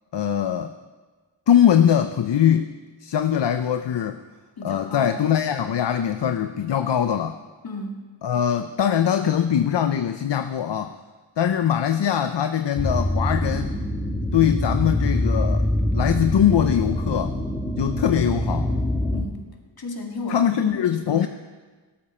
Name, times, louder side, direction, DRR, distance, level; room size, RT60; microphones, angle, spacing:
voice 1, 0.1-0.7 1.5-2.7 3.0-4.2 4.6-7.4 8.2-10.9 11.4-13.7 14.3-15.6 15.9-17.4 17.8-18.7 20.3-21.3, left 9 dB, 70° left, 9 dB, 0.7 m, -22 dB
voice 2, 4.6-5.1 7.6-8.0 19.1-19.4 19.8-20.5 20.7-21.3, left 2 dB, 55° left, 2 dB, 2.2 m, -33 dB
sound 1, 12.8-19.2, left 1 dB, 10° left, 2.0 m, -24 dB
17.5 x 13.0 x 4.4 m, 1.4 s
wide cardioid pair, 85°, 44 cm